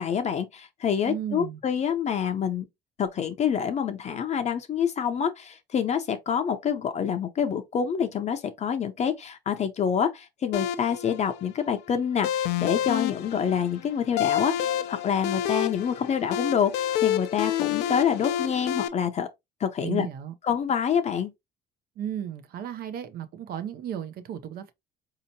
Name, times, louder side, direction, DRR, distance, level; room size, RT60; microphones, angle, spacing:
voice 1, 0.0-2.7 3.0-19.3 19.6-20.1 20.4-21.3, left 8 dB, 40° left, 0.6 m, -27 dB
voice 2, 1.0-1.6 19.8-20.3 22.0-24.7, right 9 dB, 65° right, 0.5 m, -34 dB
sound 1, 10.5-18.9, left 11 dB, 85° left, 0.5 m, -29 dB
4.2 x 2.8 x 2.7 m
cardioid pair, 110°, 17 cm